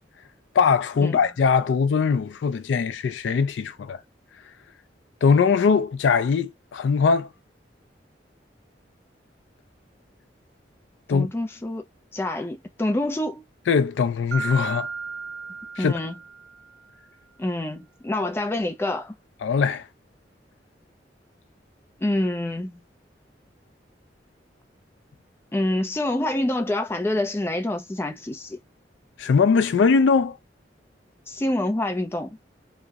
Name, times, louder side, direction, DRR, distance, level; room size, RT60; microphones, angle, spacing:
voice 1, 0.5-4.0 5.2-7.3 11.1-11.3 13.7-14.9 15.8-15.9 19.4-19.9 29.2-30.4, left 5 dB, 90° left, 0.4 m, -21 dB
voice 2, 11.1-11.8 12.1-13.4 15.8-16.1 17.4-19.1 22.0-22.8 25.5-28.6 31.3-32.4, left 1 dB, 15° left, 0.4 m, -26 dB
Mallet percussion, 14.3-16.9, right 5 dB, 70° right, 0.6 m, -34 dB
2.7 x 2.1 x 2.3 m
head